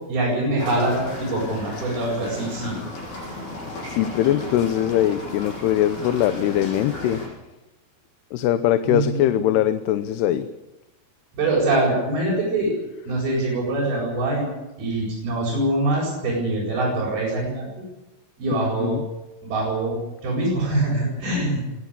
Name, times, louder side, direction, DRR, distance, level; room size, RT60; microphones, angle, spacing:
voice 1, 0.1-2.8 8.8-9.4 11.3-12.7 13.1-14.5 14.8-17.7 18.4-19.0 19.4-21.6, right 2 dB, 65° right, -5 dB, 9.5 m, -24 dB
sound 1, 0.6-7.3, left 2 dB, 65° left, 9.1 m, -35 dB
voice 2, 3.9-7.2 8.3-10.5 18.5-19.0, left 11 dB, 90° left, 10 dB, 3.0 m, -22 dB
22.5 x 16.5 x 8.6 m, 1.0 s
omnidirectional pair, 4.6 m